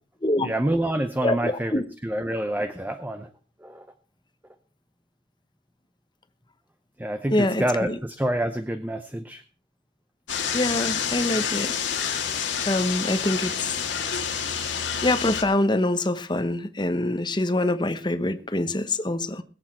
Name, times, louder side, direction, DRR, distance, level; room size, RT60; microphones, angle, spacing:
voice 1, 0.4-3.3 3.6-3.9 7.0-9.4, right 1 dB, 10° right, 0.7 m, -27 dB
voice 2, 1.2-1.8 7.3-8.0 10.5-11.7 12.6-13.9 15.0-19.4, left 1 dB, 25° left, 0.9 m, -25 dB
sound 1, 10.3-15.4, left 7 dB, 75° left, 2.0 m, -28 dB
21.0 x 8.2 x 4.4 m
head